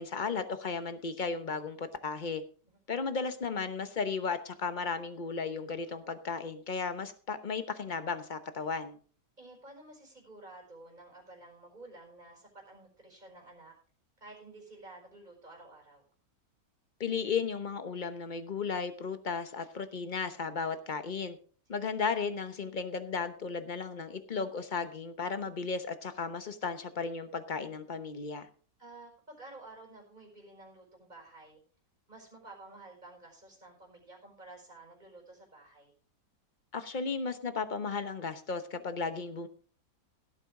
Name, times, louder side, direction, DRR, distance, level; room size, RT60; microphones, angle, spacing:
voice 1, 0.0-2.4 2.9-9.0 17.0-21.4 21.7-28.5 36.7-39.5, left 5 dB, 35° left, 10 dB, 0.9 m, -35 dB
voice 2, 9.4-13.7 14.2-16.0 28.8-31.6 32.1-35.9, right 2 dB, 25° right, 0 dB, 5.0 m, -52 dB
16.5 x 8.7 x 3.7 m, 0.42 s
omnidirectional pair, 1.8 m